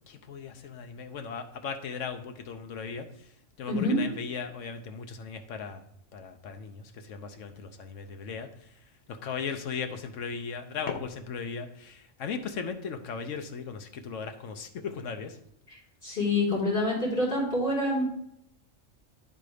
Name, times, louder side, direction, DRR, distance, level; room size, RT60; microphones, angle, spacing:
voice 1, 0.0-3.1 3.6-5.8 6.1-8.5 9.1-15.4, left 6 dB, 70° left, 7 dB, 1.1 m, -37 dB
voice 2, 3.7-4.0 16.0-18.0, left 2 dB, 40° left, -6 dB, 3.4 m, -26 dB
9.9 x 3.9 x 4.9 m, 0.75 s
omnidirectional pair, 1.4 m